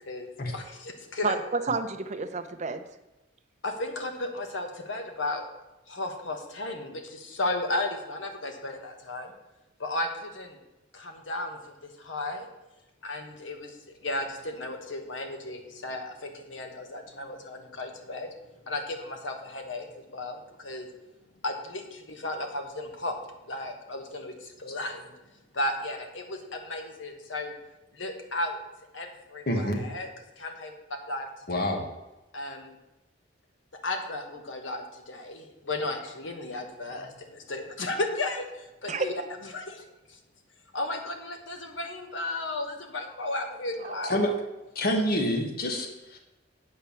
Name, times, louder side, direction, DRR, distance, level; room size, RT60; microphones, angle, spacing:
voice 1, 0.1-1.4 3.6-5.5 5.9-9.3 9.8-10.6 10.9-12.5 13.0-20.9 21.4-23.2 23.5-25.1 25.5-27.5 27.9-28.6 28.9-30.1 30.4-30.7 31.1-31.3 31.5-31.8 32.3-32.8 33.8-39.1 39.5-40.2 40.7-44.2, left 2 dB, 90° left, 4 dB, 1.4 m, -34 dB
voice 2, 1.2-2.8 38.9-39.1 43.8-44.4, right 4 dB, 40° right, 8 dB, 0.6 m, -31 dB
voice 3, 29.5-29.8 31.5-31.9 44.1-44.3 44.7-46.4, left 1 dB, 55° left, 4 dB, 1.2 m, -27 dB
8.7 x 4.5 x 7.1 m, 1.0 s
head